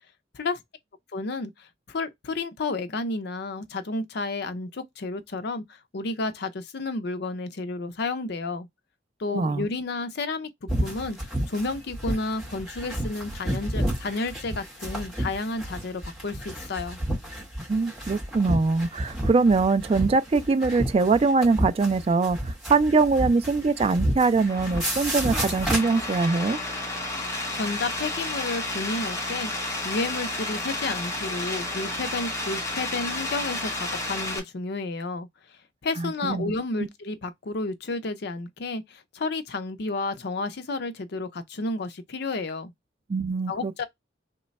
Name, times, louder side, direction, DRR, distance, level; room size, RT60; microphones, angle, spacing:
voice 1, 1.1-8.7 9.2-10.5 10.8-17.0 27.5-35.3 35.8-42.7 43.5-43.8, left 3 dB, 65° left, 0.5 m, -31 dB
voice 2, 9.3-9.7 17.7-26.6 36.0-36.5 43.1-43.8, right 4 dB, 35° right, 0.3 m, -23 dB
sound 1, 10.7-26.2, right 1 dB, ahead, 1.9 m, -31 dB
sound 2, 24.4-34.4, left 2 dB, 15° left, 0.9 m, -32 dB
3.2 x 2.2 x 4.0 m
head